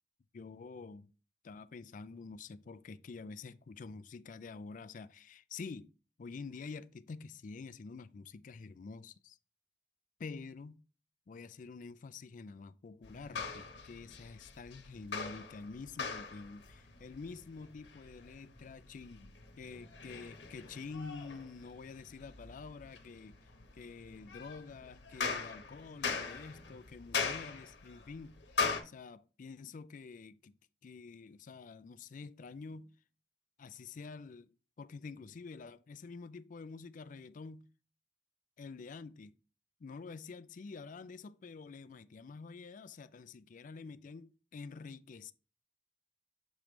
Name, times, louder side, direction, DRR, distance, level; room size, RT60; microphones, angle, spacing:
voice 1, 0.3-1.1 1.4-5.9 6.2-9.4 10.2-10.8 11.3-23.4 23.7-28.4 28.9-30.5 30.8-32.9 33.6-34.5 34.8-37.7 38.6-39.3 39.8-45.3, left 4 dB, 45° left, 0.4 m, -48 dB
sound 1, 13.0-28.8, left 5 dB, 80° left, 1.1 m, -41 dB
7.2 x 3.1 x 5.0 m
head